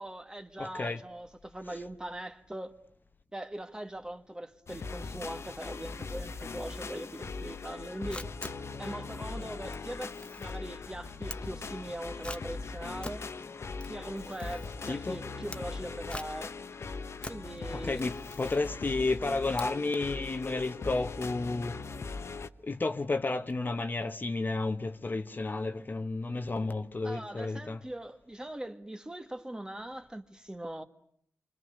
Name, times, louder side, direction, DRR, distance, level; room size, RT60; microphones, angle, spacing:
voice 1, 0.0-2.7 3.3-8.3 8.8-13.3 13.9-16.5 17.3-18.1 27.0-30.8, right 1 dB, 15° right, 1.9 m, -41 dB
voice 2, 0.6-1.0 14.9-15.2 17.7-21.8 22.6-27.8, left 3 dB, 40° left, 1.3 m, -32 dB
sound 1, 4.7-22.5, left 4 dB, 65° left, 1.2 m, -40 dB
Camera, 8.1-20.1, left 2 dB, 20° left, 1.3 m, -47 dB
29.5 x 24.5 x 6.7 m
wide cardioid pair, 80°, 5 cm